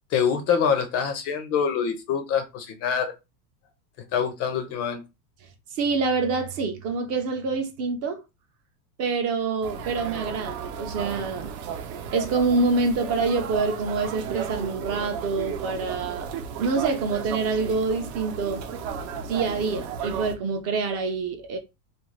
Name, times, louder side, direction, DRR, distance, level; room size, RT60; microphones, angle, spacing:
voice 1, 0.1-3.1 4.1-5.0, left 7 dB, 35° left, 0.4 m, -25 dB
voice 2, 5.7-8.2 9.0-11.5 12.1-16.3 16.6-18.7 19.3-21.6, right 4 dB, 35° right, 0.4 m, -26 dB
sound 1, 9.6-20.3, right 7 dB, 65° right, 0.7 m, -34 dB
2.5 x 2.3 x 3.1 m
supercardioid pair, 130°, 47 cm